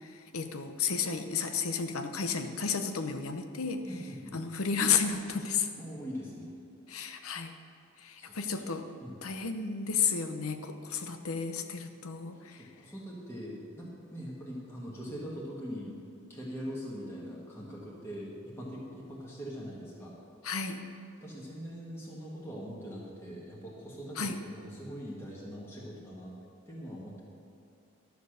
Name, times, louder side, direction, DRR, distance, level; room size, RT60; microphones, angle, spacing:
voice 1, 0.3-3.9 4.3-5.7 6.9-7.5 8.0-8.9 9.2-12.6 20.4-20.9 24.2-24.4, left 6 dB, 85° left, 7 dB, 0.8 m, -32 dB
voice 2, 3.9-4.4 5.8-6.5 8.2-8.4 9.0-9.2 12.5-15.9 16.3-20.1 21.2-26.3 26.6-27.2, equal, 10° left, -5 dB, 1.6 m, -42 dB
12.0 x 6.8 x 6.5 m, 2.6 s
head